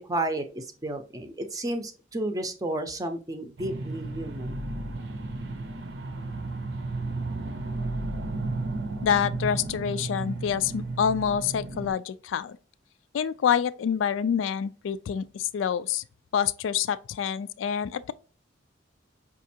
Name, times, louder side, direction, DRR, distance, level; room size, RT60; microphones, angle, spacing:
voice 1, 0.0-4.7, right 1 dB, 20° right, 0.5 m, -32 dB
sound 1, 3.6-11.9, right 2 dB, 70° right, 0.7 m, -33 dB
voice 2, 9.0-12.6 13.1-16.0 16.3-18.1, left 8 dB, 90° left, 0.3 m, -27 dB
5.2 x 2.4 x 2.7 m
head